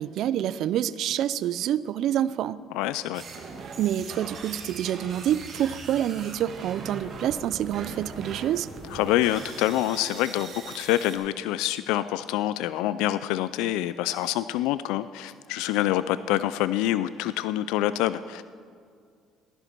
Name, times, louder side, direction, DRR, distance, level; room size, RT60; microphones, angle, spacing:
voice 1, 0.0-2.6 3.8-8.7, right 11 dB, 65° right, 17 dB, 0.4 m, -27 dB
voice 2, 2.7-3.2 8.9-18.4, left 14 dB, 85° left, 14 dB, 0.3 m, -26 dB
sound 1, 3.1-11.2, right 4 dB, 50° right, 2.1 m, -41 dB
15.5 x 11.0 x 4.5 m, 2.2 s
cardioid pair, 95°, 0 cm